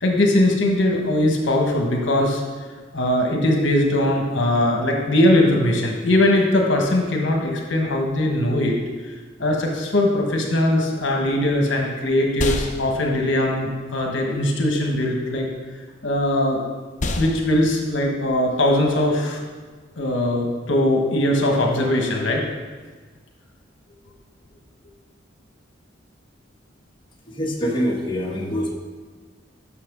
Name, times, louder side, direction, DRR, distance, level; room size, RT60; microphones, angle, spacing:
voice 1, 0.0-2.4 2.9-8.8 9.0-9.1 9.4-15.5 16.0-16.6 17.2-19.4 20.0-22.4, left 1 dB, 70° left, 1 dB, 1.2 m, -20 dB
sound 1, 12.3-20.6, left 2 dB, 40° left, 0.7 m, -34 dB
voice 2, 27.3-28.7, equal, 25° left, -3 dB, 1.2 m, -25 dB
6.2 x 5.8 x 6.0 m, 1.4 s
head